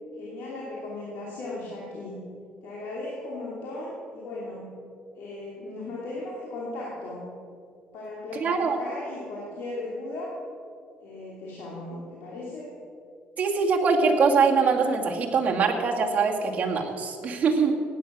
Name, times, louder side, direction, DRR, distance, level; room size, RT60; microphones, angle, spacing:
voice 1, 0.1-2.2 2.6-4.7 5.1-7.3 7.9-10.4 11.0-12.7 17.6-17.7, left 2 dB, 80° left, -5 dB, 2.9 m, -37 dB
voice 2, 8.4-8.8 13.4-17.7, right 5 dB, 45° right, 0 dB, 2.2 m, -23 dB
16.0 x 10.0 x 6.2 m, 2.4 s
cardioid pair, 110°, 4 cm